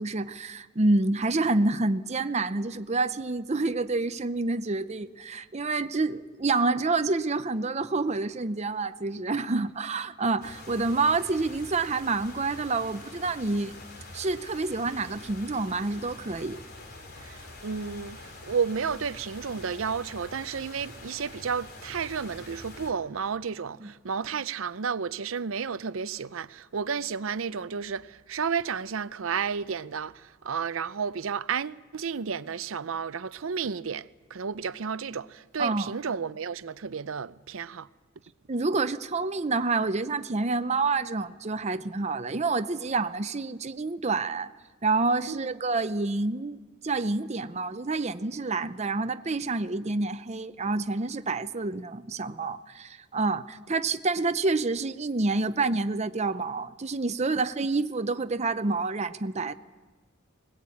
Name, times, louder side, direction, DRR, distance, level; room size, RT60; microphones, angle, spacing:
voice 1, 0.0-13.7 14.1-16.6 23.8-23.9 35.6-35.9 38.5-44.5 44.8-59.5, right 3 dB, 35° right, 0.7 m, -28 dB
sound 1, 10.4-22.9, left 2 dB, 50° left, 2.8 m, -45 dB
voice 2, 17.2-37.9 45.3-45.5, right 6 dB, 80° right, 0.6 m, -32 dB
21.0 x 20.0 x 8.6 m
head